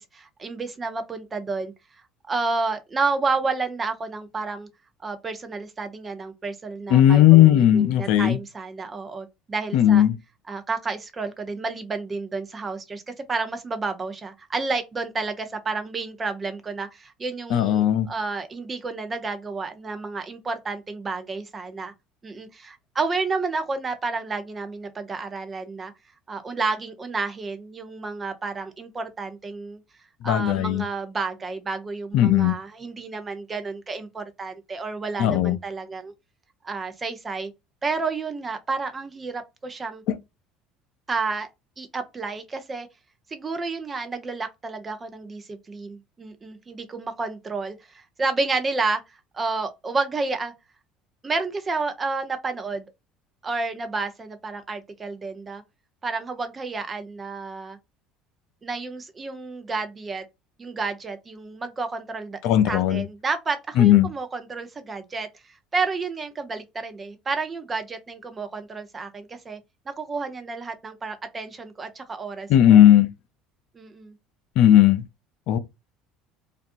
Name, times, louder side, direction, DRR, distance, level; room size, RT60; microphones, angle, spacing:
voice 1, 0.0-1.7 2.2-4.7 5.0-10.0 10.5-13.0 13.3-21.9 22.2-25.9 26.3-29.8 30.2-36.1 36.6-37.5 37.8-40.0 41.1-41.5 41.8-42.9 43.3-50.5 51.2-52.9 53.4-55.6 56.0-57.8 58.6-60.2 60.6-62.4 62.7-65.3 65.7-69.6 69.9-72.8 73.7-74.1, right 4 dB, 30° right, 0.6 m, -30 dB
voice 2, 6.9-8.4 9.7-10.2 17.5-18.1 30.2-30.8 32.1-32.6 35.2-35.6 40.1-40.2 62.4-63.0 63.8-64.1 72.5-73.1 74.6-75.0 75.5-75.6, left 11 dB, 65° left, 0.4 m, -16 dB
2.6 x 2.3 x 2.5 m
hypercardioid pair, 70°, 0 cm